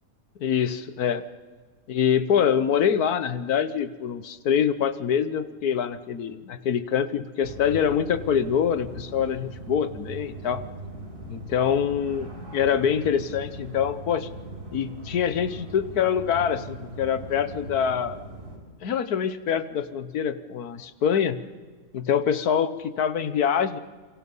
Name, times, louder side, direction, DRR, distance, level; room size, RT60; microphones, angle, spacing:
voice 1, 0.4-1.2 1.9-10.6 11.3-14.3 14.7-18.2 18.8-21.4 21.9-23.8, left 8 dB, 85° left, 13 dB, 1.6 m, -25 dB
sound 1, 7.4-18.6, right 1 dB, 85° right, 5.8 m, -40 dB
27.5 x 24.5 x 5.5 m, 1.4 s
omnidirectional pair, 1.6 m